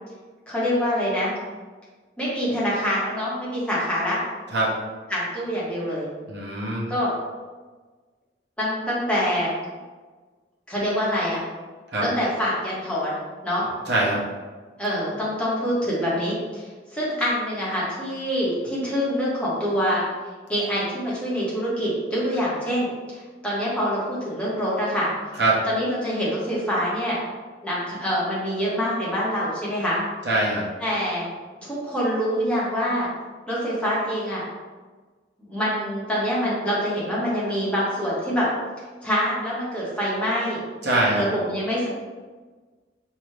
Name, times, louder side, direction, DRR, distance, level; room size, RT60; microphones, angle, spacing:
voice 1, 0.5-1.3 2.2-4.2 5.1-6.0 6.9-7.1 8.6-9.5 10.7-11.4 12.0-13.1 13.4-13.6 14.8-20.0 20.5-25.1 25.6-27.2 27.6-30.0 30.8-31.3 31.6-33.1 33.5-34.4 35.4-38.5 39.0-40.6 41.2-41.9, equal, 5° left, -8 dB, 1.3 m, -25 dB
voice 2, 6.3-6.9 11.9-12.0 13.9-14.2 25.4-25.6 30.2-30.6 40.8-41.2, right 2 dB, 65° right, -5 dB, 1.0 m, -22 dB
5.1 x 2.8 x 3.3 m, 1.4 s
head